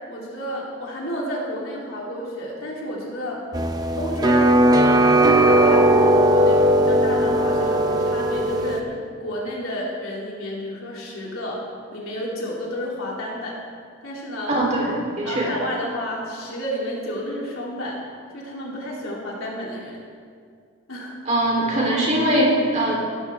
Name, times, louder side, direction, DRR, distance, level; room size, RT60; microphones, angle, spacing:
voice 1, 0.1-3.4 4.0-4.5 5.0-11.6 11.9-13.6 14.0-14.5 15.2-18.0 18.3-20.0 20.9-21.2, equal, 85° left, -4 dB, 3.3 m, -31 dB
sound 1, 3.5-8.8, right 1 dB, 20° right, 0.8 m, -17 dB
voice 2, 14.5-15.5 21.3-23.0, right 1 dB, 35° right, -3 dB, 3.5 m, -21 dB
16.0 x 14.0 x 3.6 m, 2.2 s
head